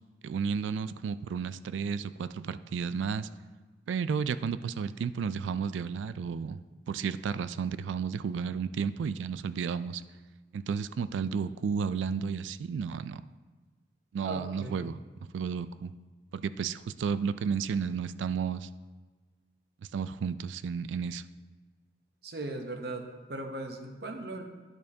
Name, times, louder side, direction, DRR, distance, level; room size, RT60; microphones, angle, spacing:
voice 1, 0.2-3.3 3.9-6.6 6.9-10.0 10.5-13.2 14.1-15.0 15.3-15.9 16.3-18.7 19.9-21.2, right 6 dB, 90° right, 15 dB, 0.3 m, -32 dB
voice 2, 14.2-15.0 22.2-23.0 23.3-24.4, right 2 dB, 60° right, 4 dB, 0.8 m, -38 dB
11.0 x 6.5 x 2.8 m, 1.3 s
head